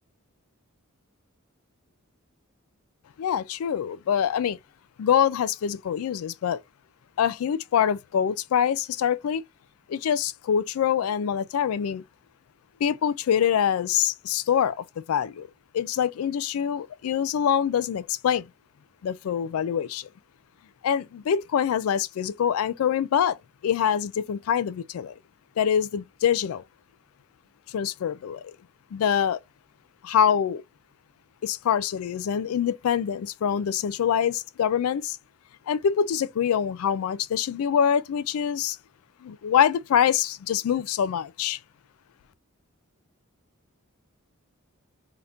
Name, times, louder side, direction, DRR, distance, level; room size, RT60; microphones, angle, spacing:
voice 1, 3.2-4.6 5.0-6.6 7.2-9.4 9.9-12.0 12.8-15.5 15.7-18.5 19.0-20.1 20.8-23.4 23.6-25.2 25.6-26.6 27.7-28.4 28.9-29.4 30.0-30.6 31.4-35.2 35.7-38.8 39.2-41.6, left 8 dB, 85° left, 0.3 m, -25 dB
2.8 x 2.5 x 3.4 m
head